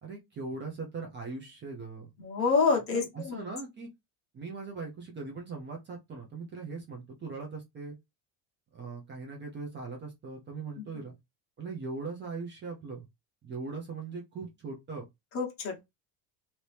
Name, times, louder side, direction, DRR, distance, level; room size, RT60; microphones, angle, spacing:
voice 1, 0.0-2.1 2.9-3.9 4.3-8.0 8.7-11.1 11.6-13.0 13.4-15.0, right 4 dB, 25° right, 0.7 m, -40 dB
voice 2, 2.2-3.4 10.8-11.0 15.3-15.8, left 4 dB, 30° left, 1.1 m, -28 dB
2.9 x 2.8 x 3.3 m
cardioid pair, 170°, 44 cm